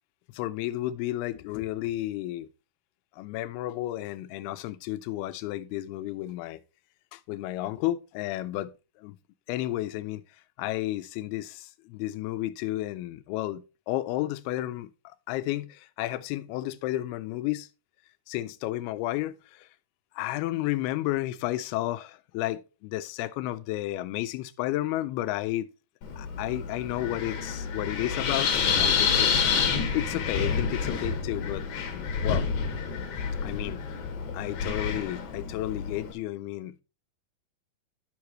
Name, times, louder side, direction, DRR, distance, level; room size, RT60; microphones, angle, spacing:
voice 1, 0.3-2.5 3.2-6.6 7.1-8.7 9.0-9.2 9.5-10.2 10.6-17.7 18.3-19.7 20.2-25.7 26.2-29.3 29.9-31.7 32.2-32.5 33.4-33.8 34.3-36.8, left 15 dB, 85° left, 2.5 m, -32 dB
Wind, 26.0-36.1, left 6 dB, 60° left, 2.4 m, -28 dB
11.0 x 5.8 x 3.1 m
omnidirectional pair, 4.4 m